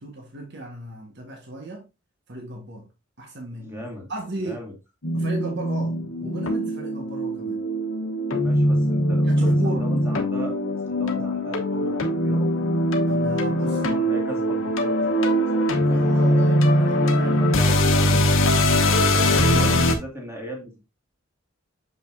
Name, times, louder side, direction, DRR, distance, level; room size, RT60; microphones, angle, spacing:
voice 1, 0.0-1.9 2.3-2.9 3.2-3.8 4.1-4.6 5.1-7.6 9.2-9.9 13.1-14.0 15.8-17.5 19.1-19.7, right 1 dB, 60° right, 1.5 m, -35 dB
voice 2, 3.6-4.1 4.4-4.7 8.4-10.6 10.8-12.5 13.9-16.2 16.5-16.9 17.4-18.7 19.2-20.9, equal, 15° right, 2.1 m, -37 dB
sound 1, 5.0-19.9, equal, 80° left, 1.1 m, -21 dB
6.9 x 5.2 x 2.7 m
head